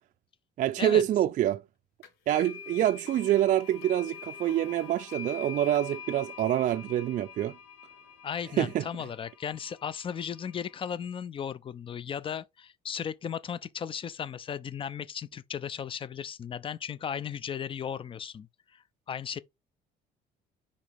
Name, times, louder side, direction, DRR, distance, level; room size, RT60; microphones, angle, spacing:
voice 1, 0.6-1.6 2.3-7.6 8.6-8.8, right 12 dB, 50° right, 0.4 m, -26 dB
sound 1, 2.0-10.9, left 7 dB, 85° left, 1.5 m, -45 dB
voice 2, 8.2-19.4, left 8 dB, 30° left, 0.5 m, -36 dB
5.0 x 4.2 x 5.1 m
cardioid pair, 110°, 17 cm